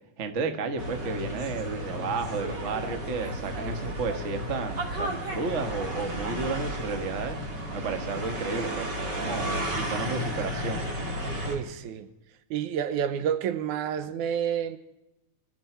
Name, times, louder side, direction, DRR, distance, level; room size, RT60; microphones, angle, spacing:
voice 1, 0.2-7.4 7.7-10.9, right 4 dB, 90° right, 0.6 m, -32 dB
sound 1, 0.8-11.6, equal, 35° right, 2.3 m, -33 dB
voice 2, 11.5-12.1 12.5-14.8, right 8 dB, 75° right, 2.2 m, -29 dB
24.5 x 13.0 x 4.4 m
omnidirectional pair, 3.7 m